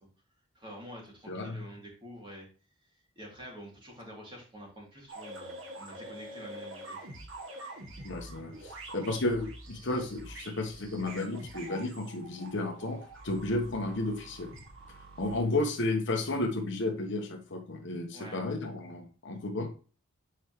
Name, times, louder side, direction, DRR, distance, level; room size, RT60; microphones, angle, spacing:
voice 1, 0.5-2.5 3.2-7.1 18.1-18.4, equal, 25° right, -3 dB, 2.7 m, -47 dB
sound 1, 5.1-15.4, right 1 dB, 70° right, 2.0 m, -46 dB
voice 2, 8.0-14.5 15.2-19.7, left 2 dB, 65° left, 4 dB, 1.1 m, -33 dB
7.7 x 4.8 x 3.1 m, 0.37 s
head